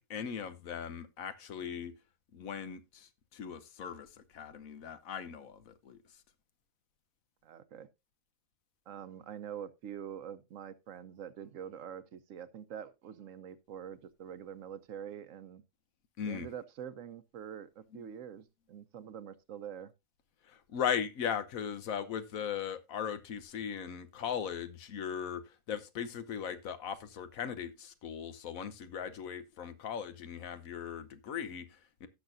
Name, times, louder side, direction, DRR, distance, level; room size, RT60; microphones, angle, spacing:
voice 1, 0.0-1.9 2.3-6.0 16.2-16.5 20.5-25.4 25.7-32.1, left 8 dB, 80° left, 1.3 m, -38 dB
voice 2, 7.4-7.9 8.9-15.6 16.2-19.9, right 9 dB, 70° right, 1.1 m, -45 dB
16.5 x 6.2 x 2.6 m
omnidirectional pair, 1.4 m